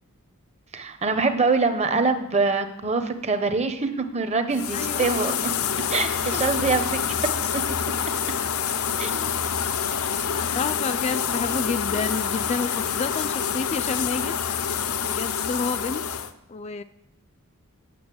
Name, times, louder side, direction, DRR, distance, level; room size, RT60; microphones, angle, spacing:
voice 1, 0.7-5.3 5.9-7.0 9.0-9.4, right 4 dB, 30° right, 8 dB, 0.9 m, -24 dB
sound 1, 4.5-16.3, left 7 dB, 80° left, 0.7 m, -27 dB
voice 2, 4.7-5.1 6.3-6.4 10.3-14.3 15.0-16.0 16.5-16.8, left 4 dB, 30° left, 11 dB, 0.3 m, -29 dB
9.4 x 6.6 x 7.7 m, 0.85 s
head